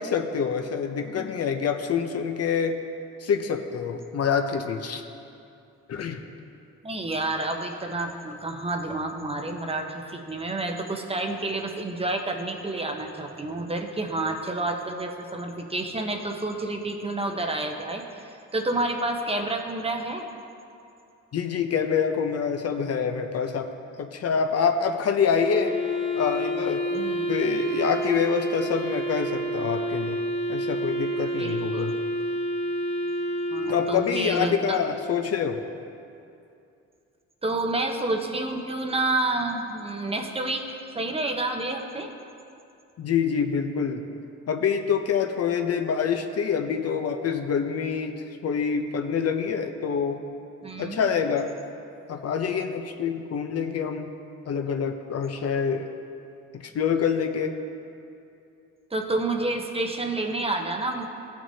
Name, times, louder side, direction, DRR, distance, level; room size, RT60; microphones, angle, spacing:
voice 1, 0.0-2.8 3.2-5.0 5.9-6.2 21.3-23.7 24.0-25.8 26.2-26.8 27.3-30.2 30.5-31.9 33.7-35.6 43.0-44.0 44.5-48.1 48.4-50.2 50.8-51.5 52.1-54.1 54.5-55.9 56.7-57.5, left 6 dB, 55° left, 5 dB, 0.7 m, -26 dB
voice 2, 6.8-20.3 26.9-27.4 31.4-31.9 33.5-34.8 37.4-42.1 50.6-51.1 58.9-61.1, right 2 dB, 20° right, 3 dB, 0.9 m, -29 dB
Wind instrument woodwind instrument, 25.4-34.6, equal, 65° right, 2.1 m, -29 dB
15.0 x 6.2 x 2.8 m, 2.6 s
cardioid pair, 90°, 30 cm